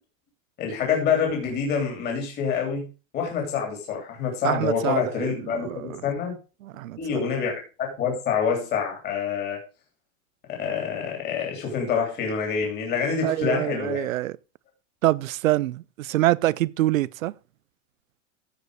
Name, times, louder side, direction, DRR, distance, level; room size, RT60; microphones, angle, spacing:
voice 1, 0.6-2.9 3.1-6.3 7.0-9.6 10.6-14.1, left 6 dB, 25° left, 3.0 m, -26 dB
voice 2, 4.4-5.3 5.6-6.0 6.6-7.2 13.2-14.4 15.0-17.3, right 15 dB, 90° right, 0.6 m, -25 dB
15.0 x 5.2 x 4.7 m
supercardioid pair, 155°, 39 cm